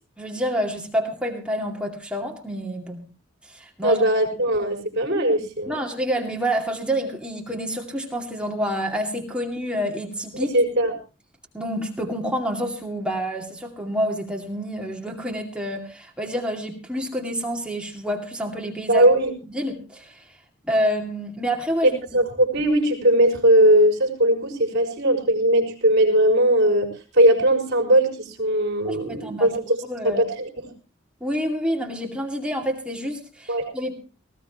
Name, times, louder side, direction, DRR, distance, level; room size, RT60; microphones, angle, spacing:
voice 1, 0.2-3.0 3.4-4.0 5.7-10.5 11.5-19.0 19.5-20.2 20.6-22.0 28.9-30.2 31.2-34.0, equal, 5° right, 1 dB, 2.4 m, -28 dB
voice 2, 3.8-5.8 10.3-10.9 18.9-19.4 21.8-30.7 33.5-33.7, right 1 dB, 55° right, 4 dB, 5.2 m, -20 dB
19.0 x 17.0 x 3.0 m, 0.33 s
head